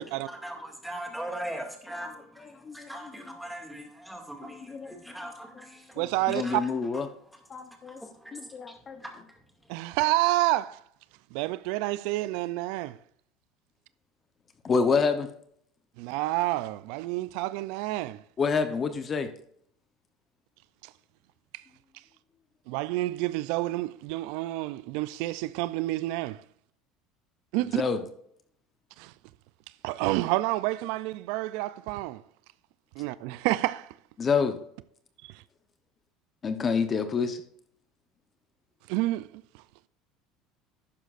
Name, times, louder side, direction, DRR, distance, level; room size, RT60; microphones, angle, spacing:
voice 1, 0.0-6.7 7.9-9.4, right 1 dB, 5° right, 2.1 m, -41 dB
voice 2, 4.6-5.2 6.0-7.1 7.5-8.0 8.3-9.0 14.6-15.3 18.4-19.3 27.6-28.1 34.2-34.6 36.4-37.4, left 5 dB, 30° left, 0.8 m, -28 dB
voice 3, 6.0-6.6 9.7-10.8 11.3-12.9 16.0-18.2 22.7-26.4 27.5-27.8 29.0-29.1 29.8-32.2 33.0-33.9 38.9-39.3, right 18 dB, 75° right, 0.3 m, -29 dB
11.5 x 9.1 x 2.5 m
supercardioid pair, 130°, 0 cm